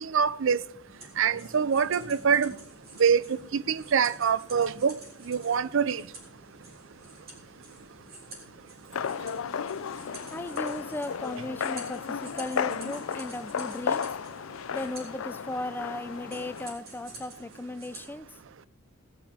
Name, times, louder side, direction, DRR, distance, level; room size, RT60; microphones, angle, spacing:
voice 1, 0.0-0.6 1.2-2.5 3.0-3.2 3.5-5.0 5.3-6.0, right 6 dB, 65° right, 0.5 m, -24 dB
sound 1, 0.9-18.1, right 2 dB, 50° right, 3.9 m, -49 dB
voice 2, 1.1-1.5 2.2-2.3 10.3-14.0 14.7-18.4, left 1 dB, 10° left, 0.4 m, -37 dB
sound 2, 8.9-16.7, left 7 dB, 75° left, 0.5 m, -34 dB
18.0 x 9.3 x 4.3 m
head